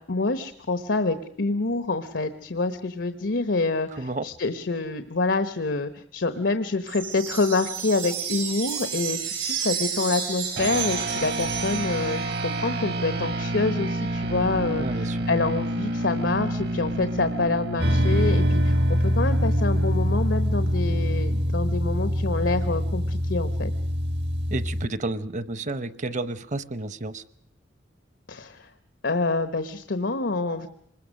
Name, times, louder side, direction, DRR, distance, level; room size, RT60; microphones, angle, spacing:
voice 1, 0.1-23.7 28.3-28.7 29.0-30.7, left 3 dB, 90° left, 11 dB, 1.0 m, -27 dB
voice 2, 3.9-4.3 14.8-15.2 24.5-27.2, right 2 dB, 40° right, 16 dB, 0.8 m, -31 dB
sound 1, 6.9-12.3, right 7 dB, 90° right, 6.7 m, -31 dB
sound 2, 10.6-20.3, right 1 dB, 60° right, 1.2 m, -30 dB
sound 3, 17.8-24.9, equal, 75° right, 1.5 m, -23 dB
25.5 x 21.0 x 6.4 m, 0.71 s
head